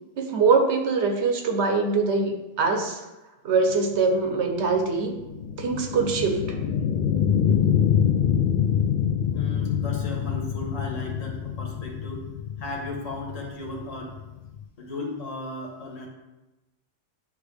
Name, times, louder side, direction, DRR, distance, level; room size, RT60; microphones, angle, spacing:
voice 1, 0.2-3.0 3.4-5.1 5.6-6.6, right 4 dB, 65° right, 5 dB, 1.0 m, -23 dB
sound 1, 3.9-14.6, left 8 dB, 60° left, 0.5 m, -25 dB
voice 2, 9.3-12.3 12.6-14.1 14.8-16.1, left 2 dB, 85° left, -1 dB, 1.6 m, -35 dB
9.3 x 3.3 x 3.3 m, 1.0 s
omnidirectional pair, 1.3 m